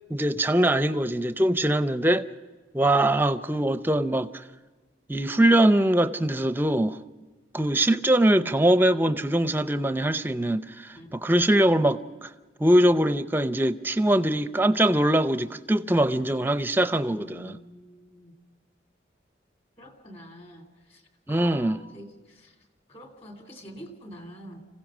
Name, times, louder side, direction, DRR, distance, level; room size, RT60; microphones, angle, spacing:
voice 1, 0.1-2.3 2.7-4.4 5.1-7.0 7.5-12.3 12.6-17.6 21.3-21.8, right 1 dB, 10° right, 0.5 m, -22 dB
voice 2, 11.0-11.6 17.1-18.4 19.8-24.6, equal, 30° left, 2.6 m, -46 dB
26.0 x 16.0 x 6.1 m
head